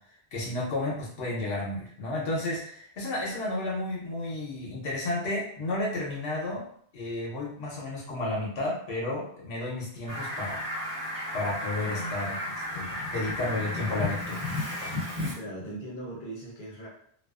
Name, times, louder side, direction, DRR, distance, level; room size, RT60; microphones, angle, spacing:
voice 1, 0.3-6.7 6.9-10.6 11.3-12.4 12.7-14.4, left 2 dB, 90° left, -4 dB, 0.9 m, -32 dB
Fowl, 10.1-15.3, left 1 dB, 35° right, 1.1 m, -33 dB
voice 2, 11.8-12.2 15.3-16.9, right 1 dB, 55° left, -4 dB, 0.8 m, -39 dB
2.4 x 2.3 x 2.3 m, 0.63 s
omnidirectional pair, 1.0 m